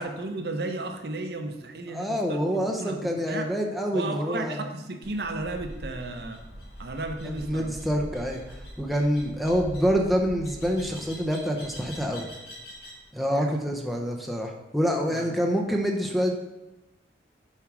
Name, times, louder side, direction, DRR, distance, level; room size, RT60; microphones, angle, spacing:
voice 1, 0.0-3.5 3.9-6.4 6.8-7.7 13.3-13.7 15.1-15.3, right 2 dB, 60° right, 5 dB, 0.8 m, -34 dB
voice 2, 1.9-4.6 7.3-12.3 13.1-16.4, equal, ahead, 0 dB, 0.7 m, -27 dB
sound 1, 5.0-13.0, equal, 65° left, 3.1 m, -43 dB
7.3 x 4.6 x 6.0 m, 1.0 s
head